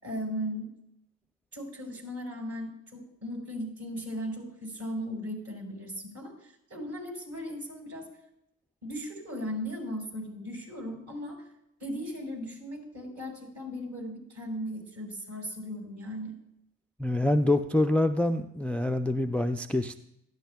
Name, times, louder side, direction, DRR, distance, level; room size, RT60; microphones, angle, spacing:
voice 1, 0.0-0.7 1.5-8.1 8.8-11.4 11.8-16.4, equal, 55° right, 0 dB, 5.2 m, -37 dB
voice 2, 17.0-20.0, left 1 dB, 5° left, 9 dB, 0.3 m, -26 dB
17.5 x 12.5 x 2.3 m, 0.81 s
cardioid pair, 75°, 35 cm